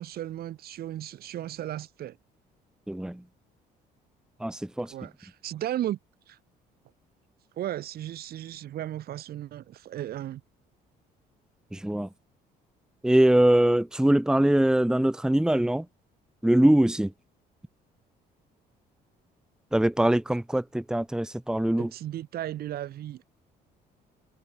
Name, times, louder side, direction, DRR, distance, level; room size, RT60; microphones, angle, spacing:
voice 1, 0.0-2.2 4.9-6.0 6.3-6.4 7.6-10.4 21.8-23.3, right 12 dB, 65° right, 4.8 m, -35 dB
voice 2, 2.9-3.2 4.4-4.9 11.7-12.1 13.0-15.9 16.4-17.1 19.7-21.9, right 1 dB, 5° right, 1.5 m, -22 dB
cardioid pair, 110°, 17 cm